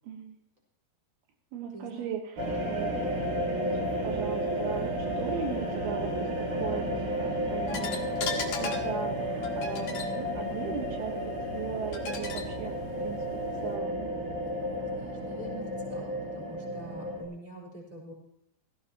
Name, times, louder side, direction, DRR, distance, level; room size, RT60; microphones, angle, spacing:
voice 1, 0.0-0.4 1.5-2.9 3.6-3.7 4.0-11.2 11.5-14.1, right 7 dB, 75° right, 3 dB, 3.2 m, -38 dB
voice 2, 1.7-2.1 14.9-18.1, right 1 dB, 10° right, -1 dB, 4.2 m, -45 dB
sound 1, 2.4-17.2, equal, 50° right, 4.7 m, -32 dB
sound 2, 7.7-13.7, left 5 dB, 60° left, 3.0 m, -39 dB
16.5 x 16.5 x 2.9 m, 0.80 s
omnidirectional pair, 4.6 m